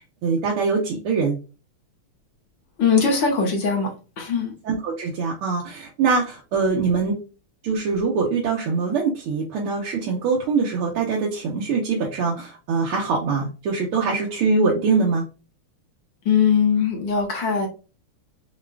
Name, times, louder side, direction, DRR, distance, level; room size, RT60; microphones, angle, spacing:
voice 1, 0.2-1.4 4.7-7.2 7.6-15.2, right 4 dB, 80° right, 1.9 m, -23 dB
voice 2, 2.8-4.5 16.3-17.7, left 6 dB, 60° left, 2.0 m, -21 dB
7.1 x 2.4 x 2.3 m
omnidirectional pair, 2.4 m